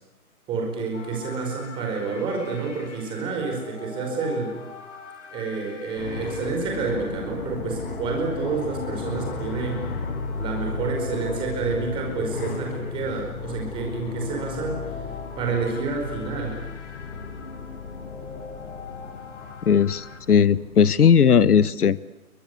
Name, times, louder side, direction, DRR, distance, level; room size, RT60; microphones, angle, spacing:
voice 1, 0.5-4.5 5.3-9.9 10.4-14.8 15.4-16.6, right 4 dB, 10° right, 1 dB, 5.0 m, -29 dB
sound 1, 0.9-20.2, left 5 dB, 50° left, 4.0 m, -42 dB
sound 2, 6.0-21.7, left 5 dB, 35° left, 4.0 m, -35 dB
voice 2, 19.7-22.0, left 7 dB, 80° left, 18 dB, 1.2 m, -17 dB
29.5 x 24.0 x 8.3 m, 0.89 s
hypercardioid pair, 165°, 45 cm